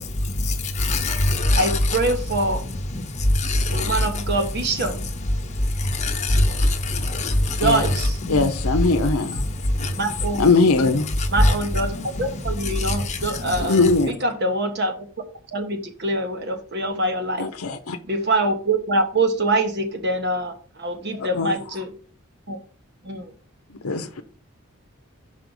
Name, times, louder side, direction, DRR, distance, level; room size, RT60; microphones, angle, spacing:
voice 1, 0.0-13.9, left 1 dB, 30° left, 1.2 m, -24 dB
voice 2, 1.5-2.6 3.7-4.9 7.6-8.1 10.0-10.4 11.3-11.9 12.2-13.8 14.2-14.9 15.5-17.5 18.1-20.5 20.8-21.9 22.5-22.6 23.0-23.3, right 2 dB, 50° right, 1.3 m, -24 dB
voice 3, 8.3-9.4 10.3-11.1 13.6-14.2 17.4-18.0 21.2-21.6 23.7-24.2, left 3 dB, 80° left, 0.7 m, -21 dB
5.6 x 5.1 x 6.4 m
head